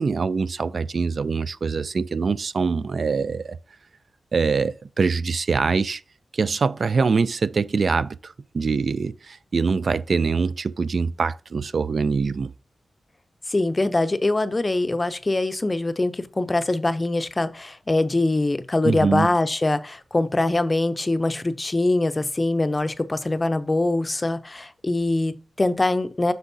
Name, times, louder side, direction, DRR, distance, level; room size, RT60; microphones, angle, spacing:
voice 1, 0.0-3.6 4.3-6.0 6.3-12.5 18.8-19.3, right 5 dB, 55° right, 0.3 m, -24 dB
voice 2, 13.5-26.3, left 2 dB, 25° left, 0.5 m, -23 dB
8.0 x 6.2 x 2.7 m
wide cardioid pair, 125°, 0 cm